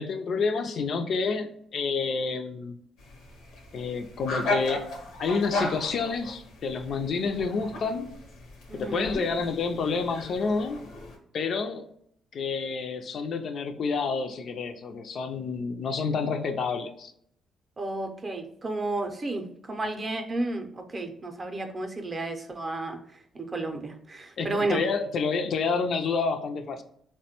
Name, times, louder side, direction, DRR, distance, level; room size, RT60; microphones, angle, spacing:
voice 1, 0.0-2.7 3.7-4.8 5.2-8.1 8.7-10.8 11.3-11.9 12.3-17.1 24.4-26.8, left 4 dB, 60° left, 7 dB, 0.3 m, -29 dB
sound 1, 3.0-11.2, left 2 dB, 85° left, 0.7 m, -36 dB
voice 2, 8.7-9.2 17.8-23.0 23.3-24.8, right 2 dB, 30° right, 5 dB, 0.5 m, -32 dB
3.4 x 2.1 x 2.8 m, 0.70 s
cardioid pair, 90°, 0 cm